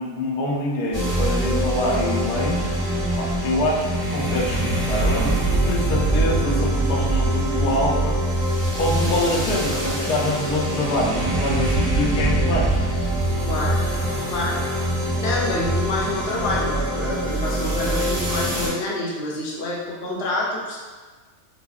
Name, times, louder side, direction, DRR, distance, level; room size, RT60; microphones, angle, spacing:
voice 1, 0.0-2.6 3.2-8.2 8.8-12.8, left 1 dB, 85° left, -2 dB, 1.2 m, -25 dB
sound 1, 0.9-18.7, right 1 dB, 40° right, 1.2 m, -23 dB
voice 2, 13.4-13.8 14.3-14.6 15.2-20.8, left 2 dB, 55° left, -4 dB, 0.7 m, -27 dB
5.5 x 2.0 x 2.3 m, 1.4 s
omnidirectional pair, 1.6 m